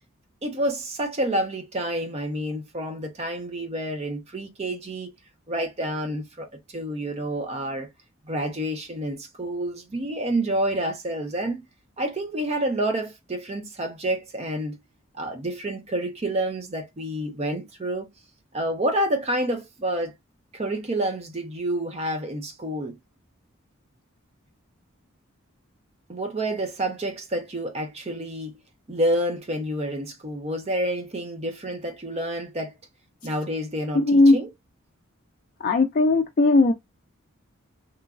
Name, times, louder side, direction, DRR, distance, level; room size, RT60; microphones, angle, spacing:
voice 1, 0.4-5.1 5.5-7.9 8.3-11.6 12.0-14.8 15.1-18.1 18.5-20.1 20.5-23.0 26.1-28.5 28.9-32.7 33.2-34.5, right 1 dB, 30° right, 0.5 m, -28 dB
voice 2, 33.9-34.4 35.6-36.7, left 2 dB, 40° left, 0.4 m, -17 dB
3.0 x 2.3 x 2.3 m
head